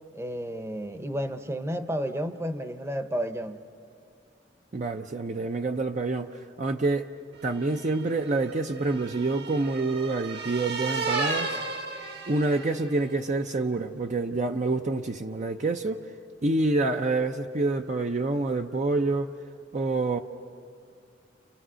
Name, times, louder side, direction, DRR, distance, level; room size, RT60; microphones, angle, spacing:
voice 1, 0.1-3.6, equal, 15° right, 9 dB, 0.9 m, -31 dB
voice 2, 4.7-7.1 7.4-11.6 12.3-16.0 16.4-19.3 19.7-20.2, right 2 dB, 40° right, 5 dB, 0.6 m, -27 dB
sound 1, 7.6-13.0, right 3 dB, 65° right, 2.0 m, -34 dB
30.0 x 28.5 x 6.3 m, 2.3 s
head